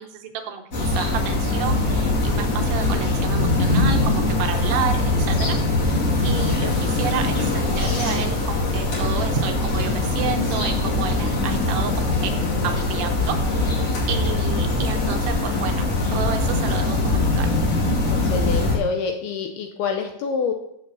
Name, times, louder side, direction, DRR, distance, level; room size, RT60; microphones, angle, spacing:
voice 1, 0.0-12.3 12.6-17.5, right 8 dB, 75° right, 4 dB, 2.8 m, -31 dB
sound 1, 0.7-18.8, left 2 dB, 40° left, 2.7 m, -22 dB
voice 2, 18.1-20.5, left 5 dB, 75° left, 4 dB, 2.4 m, -26 dB
7.8 x 6.5 x 7.1 m, 0.78 s
omnidirectional pair, 5.1 m